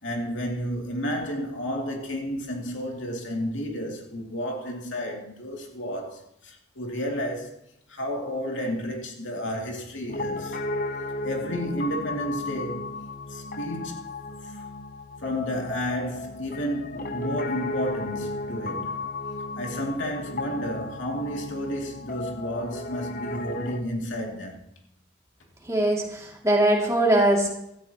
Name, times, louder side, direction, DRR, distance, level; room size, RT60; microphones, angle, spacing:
voice 1, 0.0-7.6 7.9-10.6 11.2-13.0 13.3-14.0 14.4-14.6 15.2-19.1 19.6-24.6, equal, 85° left, 2.6 m, -31 dB
Piano, 10.1-23.8, left 2 dB, 45° left, 0.8 m, -34 dB
voice 2, 25.7-27.5, right 1 dB, 15° right, 2.5 m, -21 dB
17.0 x 13.5 x 3.0 m
head